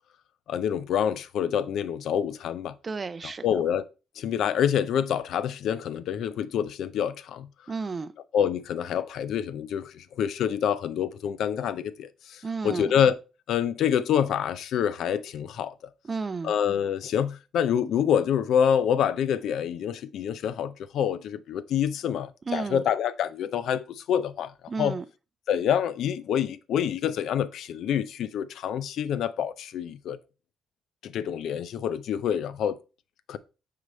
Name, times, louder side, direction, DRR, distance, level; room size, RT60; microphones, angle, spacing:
voice 1, 0.5-2.8 3.2-3.8 4.2-7.5 8.3-13.2 13.5-15.7 16.4-25.0 25.5-30.2 31.0-32.8 33.3-33.4, left 9 dB, 75° left, 0.4 m, -27 dB
voice 2, 2.8-3.5 7.7-8.1 12.4-12.9 16.0-16.5 22.5-22.8 24.7-25.1, right 4 dB, 35° right, 0.5 m, -32 dB
6.3 x 3.9 x 4.1 m
cardioid pair, 90°, 0 cm